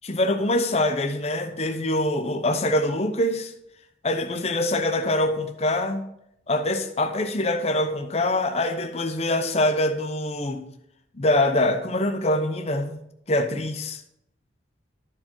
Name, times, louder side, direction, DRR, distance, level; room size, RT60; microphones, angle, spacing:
voice 1, 0.0-3.5 4.0-6.0 6.5-10.6 11.1-13.0 13.3-14.0, left 1 dB, 35° left, 0.8 m, -24 dB
12.0 x 5.0 x 3.8 m
head